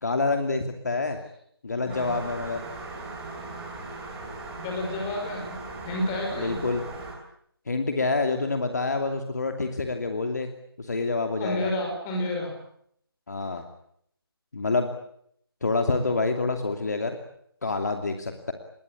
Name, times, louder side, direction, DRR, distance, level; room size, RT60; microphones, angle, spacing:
voice 1, 0.0-1.2 1.6-2.6 6.4-6.8 7.7-10.5 10.8-11.7 13.3-13.6 14.5-14.9 15.6-17.2 17.6-18.5, left 3 dB, 45° left, 6 dB, 2.7 m, -27 dB
sound 1, 1.9-7.1, right 3 dB, 10° right, 4.2 m, -38 dB
voice 2, 4.5-5.5 5.8-6.6 11.4-12.5, left 1 dB, 10° left, 1 dB, 5.6 m, -30 dB
26.5 x 22.0 x 8.5 m, 0.68 s
figure-of-eight pair, 160°, 13 cm